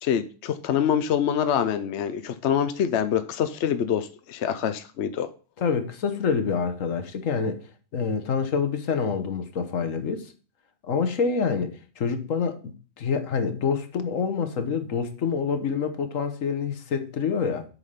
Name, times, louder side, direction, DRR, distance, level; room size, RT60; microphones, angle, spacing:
voice 1, 0.0-5.3, left 8 dB, 65° left, 1.0 m, -25 dB
voice 2, 5.6-7.6 7.9-10.3 10.8-17.6, left 6 dB, 85° left, 1.5 m, -27 dB
8.1 x 5.8 x 5.6 m
omnidirectional pair, 1.3 m